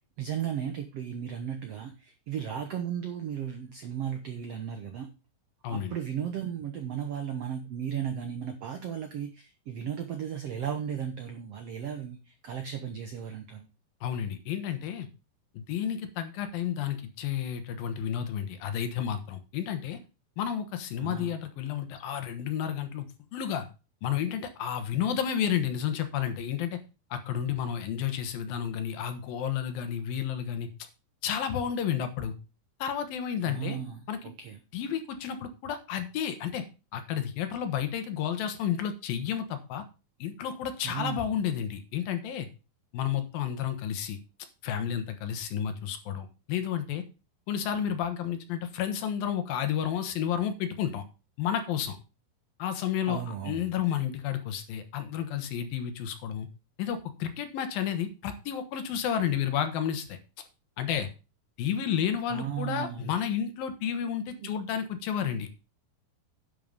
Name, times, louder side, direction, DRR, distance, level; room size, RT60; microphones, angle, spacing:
voice 1, 0.2-5.1 5.7-13.7 21.0-21.4 33.4-34.6 40.8-41.3 53.1-53.7 62.3-63.1 64.4-64.5, right 9 dB, 85° right, 6 dB, 1.4 m, -35 dB
voice 2, 14.0-15.1 15.5-20.0 20.4-23.1 23.3-23.7 24.0-26.8 27.1-30.7 31.2-32.3 32.8-33.8 34.1-34.2 34.7-36.6 36.9-39.8 40.2-42.5 42.9-44.2 44.6-47.0 47.5-51.0 51.4-52.0 52.6-56.5 56.8-60.2 60.8-61.1 61.6-65.6, left 9 dB, 75° left, 9 dB, 2.9 m, -31 dB
10.5 x 5.6 x 5.3 m, 0.31 s
omnidirectional pair, 4.3 m